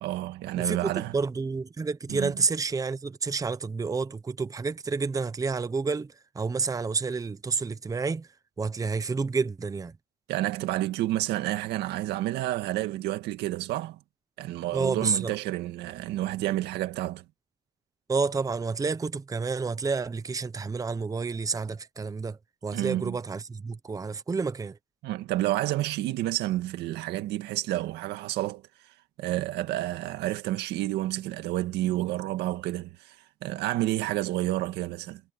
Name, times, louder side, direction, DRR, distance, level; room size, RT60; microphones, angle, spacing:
voice 1, 0.0-1.1 2.1-2.3 10.3-14.0 14.4-17.2 22.7-23.2 25.0-28.6 29.2-33.2 33.4-35.2, right 15 dB, 85° right, 1.9 m, -30 dB
voice 2, 0.6-8.3 8.6-9.9 14.7-15.4 18.1-24.8, right 4 dB, 20° right, 0.9 m, -29 dB
cardioid pair, 110°, 17 cm